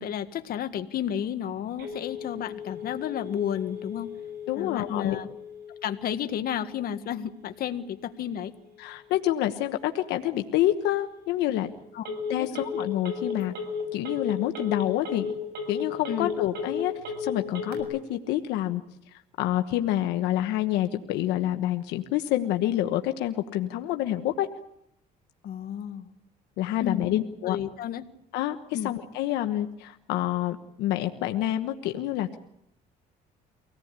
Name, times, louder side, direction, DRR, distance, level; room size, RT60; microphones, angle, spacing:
voice 1, 0.0-4.1 4.6-5.3 5.8-8.5 11.9-12.1 12.4-12.5 16.1-16.3 25.4-26.1 26.8-27.1 27.5-28.0 28.7-28.9, left 9 dB, 60° left, 8 dB, 1.7 m, -32 dB
Telephone, 1.8-17.8, left 5 dB, 75° right, 6.8 m, -37 dB
voice 2, 4.5-5.2 8.8-11.7 12.3-13.5 13.9-15.3 15.7-16.9 17.2-18.8 19.4-24.5 26.6-27.6 28.3-32.4, left 13 dB, 90° left, 6 dB, 1.3 m, -27 dB
25.0 x 18.0 x 8.3 m, 0.79 s
cardioid pair, 110°, 17 cm